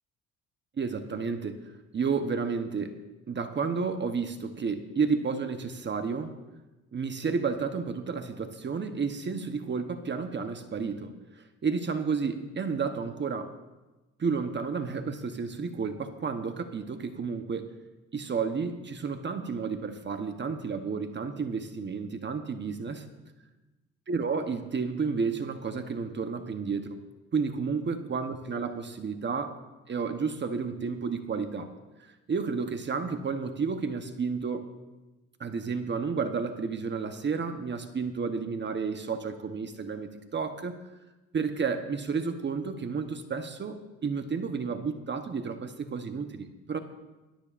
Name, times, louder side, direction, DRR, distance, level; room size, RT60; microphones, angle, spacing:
voice 1, 0.8-3.0 3.3-6.3 6.9-13.5 14.2-17.7 18.1-23.1 24.1-27.0 27.3-29.6 29.9-31.7 32.0-34.7 35.4-40.8 41.3-46.8, right 5 dB, 35° right, 7 dB, 1.0 m, -31 dB
20.5 x 12.0 x 2.5 m, 1.1 s
cardioid pair, 90°, 30 cm